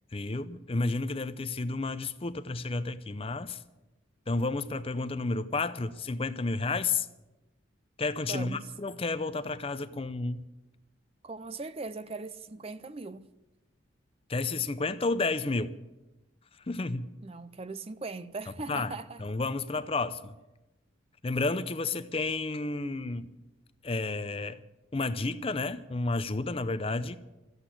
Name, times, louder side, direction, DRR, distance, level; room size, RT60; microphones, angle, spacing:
voice 1, 0.1-3.6 4.3-7.1 8.0-10.4 14.3-15.8 16.7-17.1 18.7-20.4 21.2-23.4 23.8-24.6 24.9-27.2, left 3 dB, 30° left, 0.5 m, -31 dB
voice 2, 8.3-8.7 11.2-13.2 17.2-19.2, right 3 dB, 30° right, 0.5 m, -39 dB
14.0 x 8.1 x 9.9 m
head